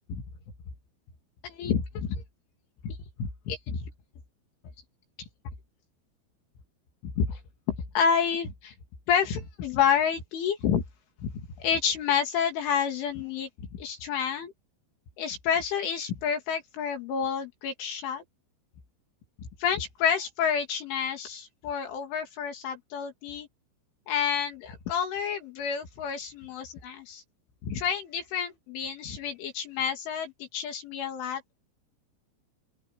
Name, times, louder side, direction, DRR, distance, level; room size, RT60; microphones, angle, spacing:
voice 1, 1.4-2.2 2.8-3.9 7.2-7.4 7.7-8.7 9.1-10.8 11.2-14.5 15.2-18.2 19.6-23.5 24.1-27.2 27.6-31.6, left 7 dB, 70° left, 5.1 m, -29 dB
open air
omnidirectional pair, 5.8 m